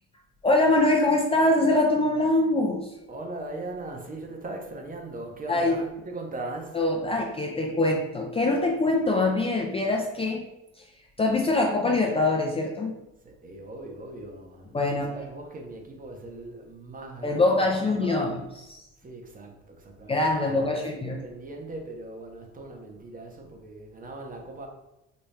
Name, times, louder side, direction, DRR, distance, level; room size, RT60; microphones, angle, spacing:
voice 1, 0.4-2.9 5.5-5.8 6.7-10.5 11.2-12.9 14.7-15.1 17.2-18.4 18.7-18.8 20.1-21.2, left 2 dB, 20° left, 0 dB, 0.5 m, -23 dB
voice 2, 3.1-6.8 13.2-18.3 19.0-24.7, right 2 dB, 30° right, 2 dB, 0.8 m, -39 dB
4.2 x 2.2 x 3.2 m, 0.92 s
supercardioid pair, 95°, 29 cm